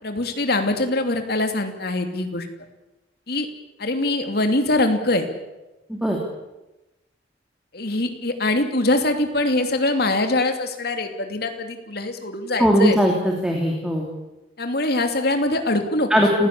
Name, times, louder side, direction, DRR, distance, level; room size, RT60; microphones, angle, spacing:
voice 1, 0.0-2.5 3.3-3.5 3.8-5.3 7.7-13.0 14.6-16.1, left 2 dB, 60° left, 6 dB, 2.9 m, -23 dB
voice 2, 12.6-14.1 16.1-16.5, equal, 5° right, 0 dB, 2.9 m, -19 dB
29.0 x 16.5 x 8.5 m, 1.0 s
head